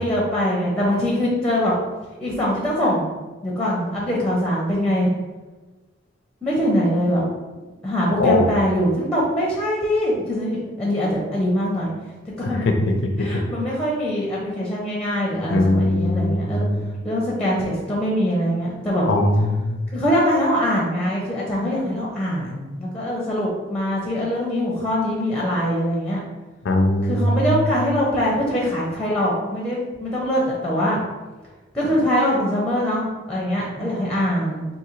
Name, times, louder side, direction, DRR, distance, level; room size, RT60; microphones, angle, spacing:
voice 1, 0.0-1.7 2.2-3.1 3.4-5.1 6.4-7.3 7.8-11.9 12.4-12.7 13.2-16.7 17.0-19.0 19.9-26.2 27.0-31.0 31.7-34.7, equal, 5° left, -4 dB, 0.5 m, -23 dB
voice 2, 8.2-8.5 12.6-12.9 15.5-16.9 19.1-19.8 26.6-27.5, left 1 dB, 65° left, 4 dB, 0.4 m, -20 dB
3.7 x 2.6 x 3.0 m, 1.2 s
head